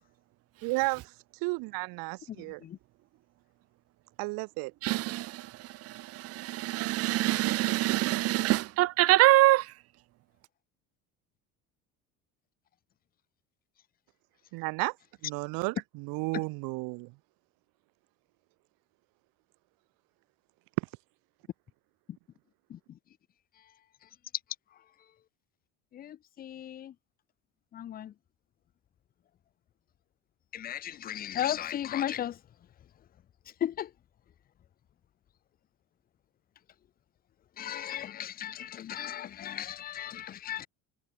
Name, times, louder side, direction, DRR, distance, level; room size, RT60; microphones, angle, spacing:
voice 1, 0.6-1.0 1.4-2.6 4.2-4.7 14.5-14.9 15.2-17.1, right 27 dB, 80° right, 1.9 m, -33 dB
voice 2, 4.8-9.7, right 16 dB, 45° right, 0.4 m, -25 dB
voice 3, 25.9-26.9 27.7-28.1 30.5-32.4 33.6-33.9 37.6-40.7, left 11 dB, 30° left, 0.4 m, -35 dB
supercardioid pair, 105°, 34 cm